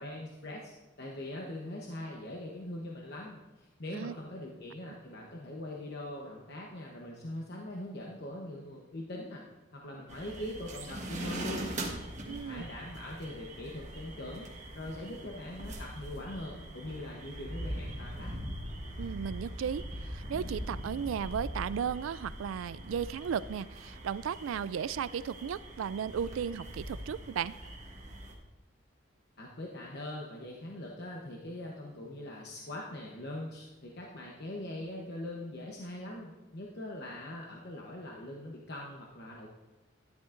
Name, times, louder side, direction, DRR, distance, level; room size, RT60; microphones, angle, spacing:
voice 1, 0.0-9.4 9.7-11.7 12.3-14.5 14.7-18.3 29.4-39.5, left 1 dB, 55° left, -2 dB, 0.9 m, -42 dB
sound 1, 10.1-28.3, right 1 dB, 35° right, 1.2 m, -42 dB
voice 2, 12.2-12.6 19.0-27.5, right 7 dB, 80° right, 18 dB, 0.3 m, -35 dB
13.0 x 10.5 x 2.5 m, 1.1 s
head